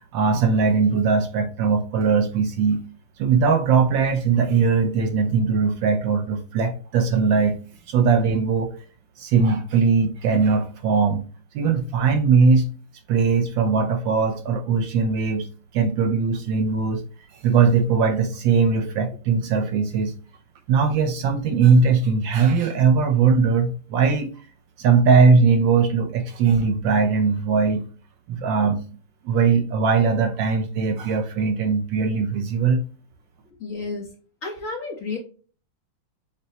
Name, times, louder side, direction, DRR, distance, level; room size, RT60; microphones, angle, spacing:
voice 1, 0.1-2.8 3.2-7.6 7.9-8.7 9.2-11.2 11.5-12.6 13.1-15.5 15.7-17.0 17.3-20.1 20.7-24.3 24.8-27.9 28.3-28.8 29.2-32.8, right 5 dB, 75° right, 1.2 m, -20 dB
voice 2, 33.6-34.1 34.4-35.2, left 3 dB, 50° left, 1.2 m, -31 dB
6.6 x 2.2 x 2.8 m
omnidirectional pair, 2.3 m